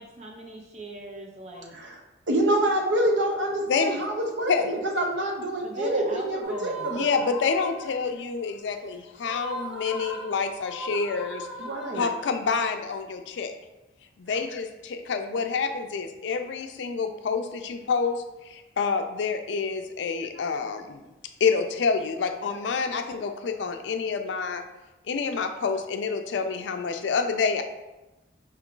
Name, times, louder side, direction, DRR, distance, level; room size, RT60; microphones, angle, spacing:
voice 1, 0.0-1.8 5.6-6.9, right 1 dB, 35° right, 1 dB, 0.6 m, -40 dB
voice 2, 2.3-7.1 11.6-12.0, right 1 dB, 75° right, 1 dB, 0.7 m, -26 dB
sound 1, 6.4-8.1 9.2-12.6, right 1 dB, 5° right, 1.0 m, -39 dB
voice 3, 6.9-11.5 11.9-13.5 14.2-18.2 18.5-21.0 21.4-24.6 25.1-27.6, left 5 dB, 75° left, 7 dB, 0.4 m, -28 dB
4.5 x 2.3 x 3.7 m, 1.0 s
head